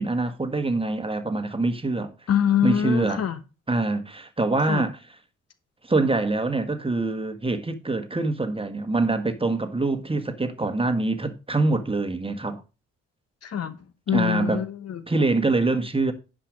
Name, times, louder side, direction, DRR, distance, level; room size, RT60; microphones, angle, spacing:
voice 1, 0.0-2.1 2.6-3.2 3.7-5.0 5.8-12.6 14.1-14.6 15.1-16.1, right 2 dB, 15° right, 1.5 m, -24 dB
voice 2, 2.3-3.4 4.7-4.8 13.4-13.8 14.1-15.0, left 9 dB, 55° left, 1.1 m, -24 dB
10.0 x 5.1 x 5.1 m
hypercardioid pair, 50°, 31 cm